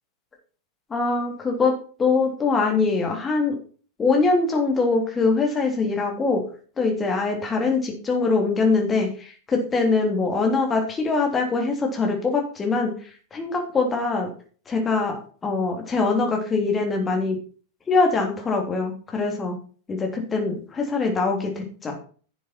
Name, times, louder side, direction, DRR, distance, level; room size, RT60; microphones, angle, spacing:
voice 1, 0.9-1.7 2.0-3.6 4.0-6.4 6.8-14.3 14.7-17.4 17.9-19.6 19.9-21.9, left 4 dB, 20° left, 2 dB, 3.3 m, -23 dB
11.5 x 7.3 x 4.4 m, 0.41 s
figure-of-eight pair, 90°, 0 cm